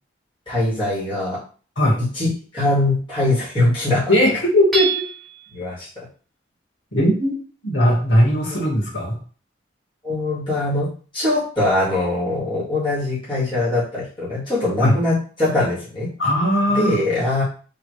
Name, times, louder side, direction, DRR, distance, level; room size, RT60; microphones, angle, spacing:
voice 1, 0.5-1.4 2.0-2.3 2.5-4.1 5.5-6.1 8.5-8.7 10.0-16.1 16.7-17.4, left 2 dB, 25° left, -11 dB, 2.3 m, -22 dB
voice 2, 4.1-4.9 6.9-7.3 7.6-9.2 14.8-14.9 16.2-17.0, equal, 75° left, -6 dB, 2.1 m, -18 dB
Hammer / Chink clink, 4.7-5.5, right 6 dB, ahead, 1.2 m, -25 dB
4.0 x 3.6 x 3.2 m, 0.40 s
head